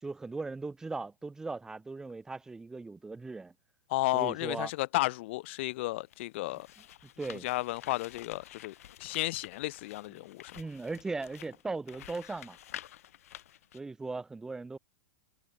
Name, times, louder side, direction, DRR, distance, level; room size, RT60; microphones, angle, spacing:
voice 1, 0.0-3.5 4.1-4.7 7.2-7.5 10.5-12.6 13.7-14.8, right 3 dB, 5° right, 2.8 m, -38 dB
voice 2, 3.9-6.7 7.4-10.5, left 19 dB, 50° left, 0.9 m, -33 dB
sound 1, 6.0-13.8, left 12 dB, 75° left, 7.0 m, -50 dB
supercardioid pair, 155°, 8 cm